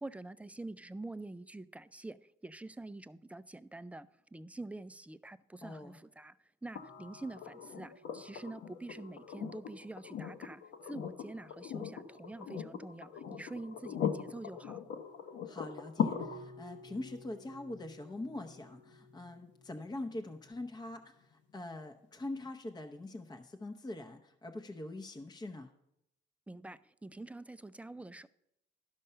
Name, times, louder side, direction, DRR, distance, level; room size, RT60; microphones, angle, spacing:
voice 1, 0.0-14.8 26.5-28.3, right 2 dB, 5° right, 0.4 m, -46 dB
voice 2, 5.6-6.0 15.4-25.7, left 2 dB, 20° left, 0.7 m, -43 dB
sound 1, 6.8-20.7 22.4-22.5, left 7 dB, 70° left, 0.9 m, -41 dB
12.0 x 5.3 x 5.6 m
cardioid pair, 90°, 20 cm